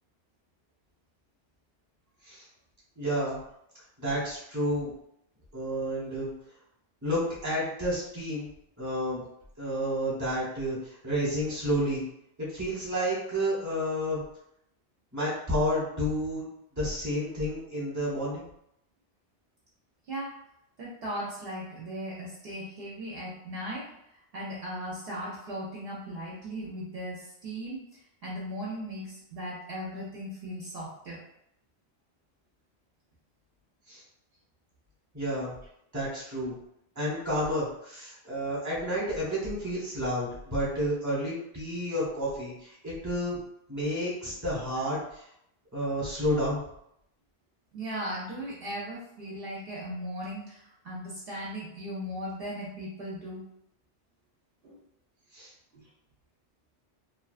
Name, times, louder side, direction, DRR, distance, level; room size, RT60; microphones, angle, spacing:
voice 1, 3.0-3.4 4.0-4.9 5.5-6.3 7.0-8.5 8.8-9.3 9.6-12.0 12.5-14.2 15.1-16.4 16.8-18.4 33.9-34.0 35.1-35.5 35.9-36.6 37.0-43.4 43.7-45.2 45.7-46.6 55.3-55.5, equal, 15° right, -6 dB, 0.9 m, -30 dB
voice 2, 20.8-23.9 24.3-27.8 28.2-31.2 44.8-44.9 47.7-53.4 54.6-54.8 55.7-55.8, equal, 65° right, -5 dB, 0.8 m, -37 dB
2.7 x 2.3 x 2.3 m, 0.75 s
omnidirectional pair, 1.2 m